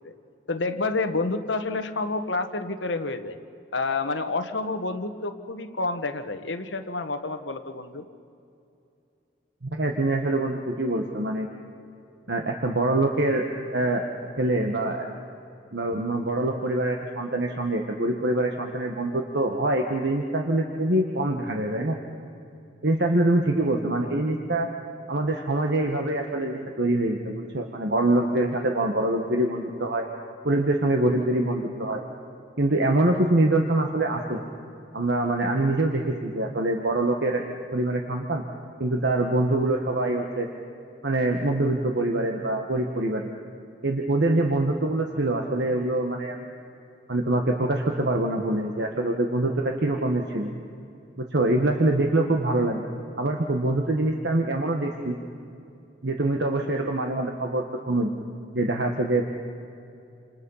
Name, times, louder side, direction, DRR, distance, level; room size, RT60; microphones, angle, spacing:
voice 1, 0.5-3.4 3.7-8.0, left 3 dB, 75° left, 8 dB, 1.5 m, -29 dB
voice 2, 9.6-11.5 12.3-13.4 13.7-14.0 14.4-15.0 15.7-22.0 22.8-24.7 25.1-30.1 30.4-32.0 32.6-34.4 34.9-37.4 37.7-38.4 38.8-40.5 41.0-43.3 43.8-46.5 47.1-50.5 51.2-52.8 53.2-55.1 56.0-58.1 58.5-59.3, right 2 dB, 65° right, 2 dB, 1.5 m, -24 dB
28.5 x 27.5 x 5.7 m, 2.6 s
head